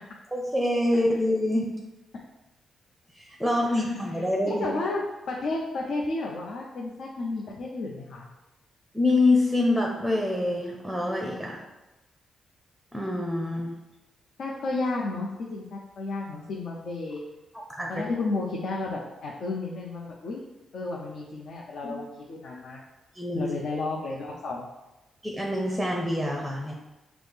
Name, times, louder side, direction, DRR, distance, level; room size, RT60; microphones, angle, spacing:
voice 1, 0.3-1.6 3.2-4.7 8.9-11.6 12.9-13.7 17.8-18.0 21.8-22.0 23.2-23.5 25.2-26.7, left 2 dB, ahead, 0 dB, 0.6 m, -25 dB
voice 2, 4.5-8.3 14.4-17.2 17.9-20.4 20.7-22.8 23.3-24.7, left 3 dB, 70° left, -2 dB, 0.6 m, -32 dB
6.0 x 2.0 x 3.4 m, 1.0 s
cardioid pair, 100°, 0 cm